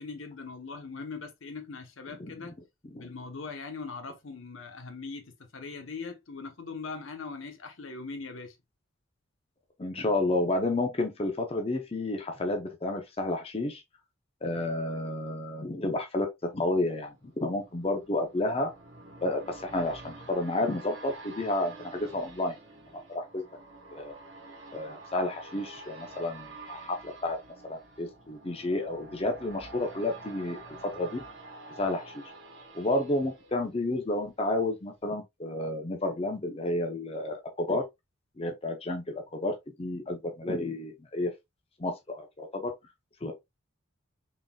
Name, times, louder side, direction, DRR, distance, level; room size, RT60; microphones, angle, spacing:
voice 1, 0.0-2.6 3.0-8.6, left 4 dB, 70° left, 0.9 m, -40 dB
voice 2, 9.8-13.8 14.4-18.7 19.2-22.6 23.1-23.4 23.9-24.1 24.7-27.4 27.6-31.2 31.8-32.2 32.7-37.8 38.4-39.5 39.8-41.3 41.8-42.7 43.2-43.3, left 2 dB, 30° left, 0.6 m, -31 dB
sound 1, 16.5-34.3 34.7-34.8, right 3 dB, 65° right, 1.1 m, -48 dB
3.9 x 3.7 x 2.2 m
head